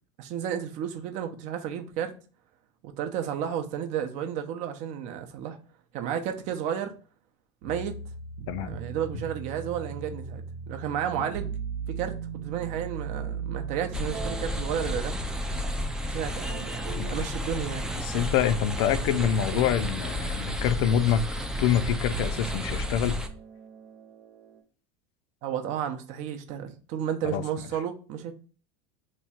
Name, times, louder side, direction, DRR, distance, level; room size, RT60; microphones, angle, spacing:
voice 1, 0.2-2.1 2.8-5.6 5.9-6.9 7.6-7.9 8.6-11.5 11.9-15.1 16.0-17.9 25.4-28.3, right 9 dB, 55° right, 0.6 m, -32 dB
sound 1, 7.6-15.9 16.5-17.4 19.2-20.9 22.0-24.6, right 6 dB, 90° right, 0.9 m, -39 dB
sound 2, 13.9-23.3, equal, 5° right, 0.3 m, -32 dB
voice 2, 18.0-21.2 21.6-23.2 27.2-27.4, left 9 dB, 70° left, 0.4 m, -26 dB
3.0 x 2.3 x 4.2 m
supercardioid pair, 125°, 15 cm